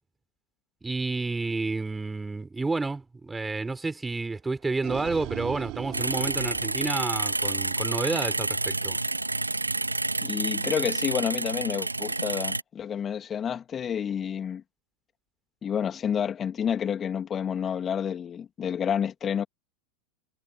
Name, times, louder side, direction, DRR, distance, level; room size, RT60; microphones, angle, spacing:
voice 1, 0.8-9.0, right 3 dB, 10° right, 5.6 m, -30 dB
sound 1, 4.5-7.7, right 22 dB, 45° right, 6.9 m, -39 dB
sound 2, 5.9-12.6, right 2 dB, 85° right, 2.5 m, -29 dB
voice 2, 10.2-14.6 15.6-19.4, left 8 dB, 25° left, 2.9 m, -29 dB
figure-of-eight pair, 85°, 0 cm